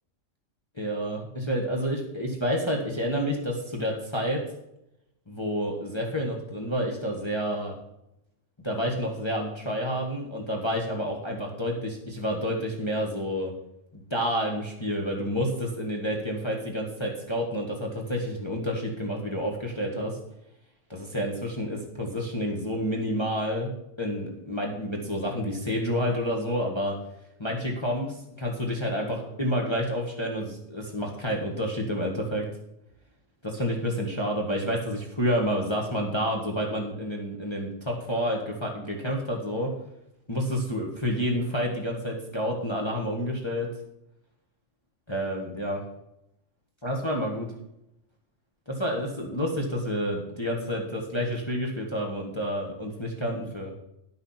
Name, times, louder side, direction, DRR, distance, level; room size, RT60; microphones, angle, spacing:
voice 1, 0.7-4.4 5.3-7.7 8.6-13.5 13.9-20.2 20.9-23.7 24.0-27.0 27.4-32.5 33.4-39.7 40.3-43.7 45.1-45.8 46.8-47.5 48.7-53.7, equal, 20° left, -1 dB, 1.7 m, -29 dB
10.5 x 6.7 x 5.8 m, 0.83 s
omnidirectional pair, 1.3 m